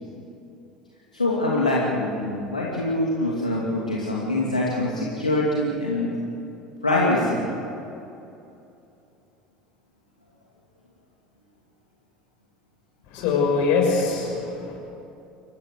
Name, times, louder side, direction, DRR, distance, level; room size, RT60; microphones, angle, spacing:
voice 1, 1.1-6.2 6.8-7.5, left 1 dB, 85° left, -5 dB, 2.8 m, -24 dB
voice 2, 13.1-14.8, left 4 dB, 55° left, 0 dB, 6.5 m, -23 dB
28.5 x 15.5 x 8.3 m, 2.8 s
figure-of-eight pair, 65°, 4 cm